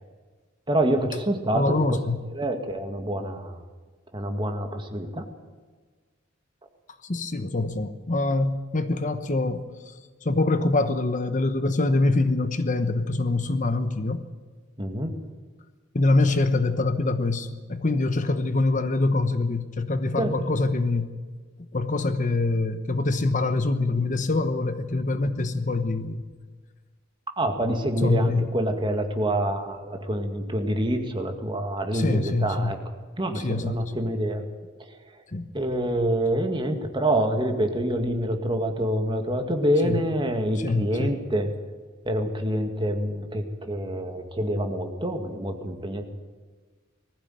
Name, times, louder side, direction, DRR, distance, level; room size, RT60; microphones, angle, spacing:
voice 1, 0.7-2.0 2.3-3.6 4.1-5.3 14.8-15.1 20.2-20.3 27.4-32.8 33.2-34.4 35.5-41.5 42.1-46.0, right 1 dB, 25° right, 5 dB, 2.1 m, -26 dB
voice 2, 1.5-2.2 7.0-9.9 10.2-14.2 15.9-21.1 21.7-26.2 28.0-28.5 31.9-32.7 33.3-33.8 35.3-35.5 39.8-40.0 40.6-41.1, left 2 dB, 40° left, 10 dB, 1.0 m, -24 dB
20.0 x 15.0 x 9.2 m, 1.4 s
head